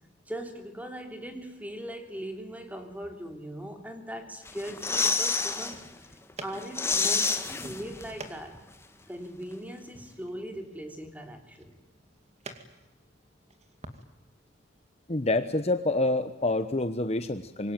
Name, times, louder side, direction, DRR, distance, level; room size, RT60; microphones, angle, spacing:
voice 1, 0.3-5.9 6.4-8.6 9.1-11.7, equal, 10° right, 5 dB, 3.2 m, -40 dB
sound 1, 4.5-5.8 6.1-6.2 6.5-8.3 8.6-8.7, left 4 dB, 15° left, 1.5 m, -28 dB
sound 2, 5.6-14.0, right 2 dB, 35° right, 2.4 m, -49 dB
voice 2, 15.1-17.7, left 2 dB, 35° left, 9 dB, 1.0 m, -27 dB
26.0 x 22.5 x 9.3 m, 1.1 s
head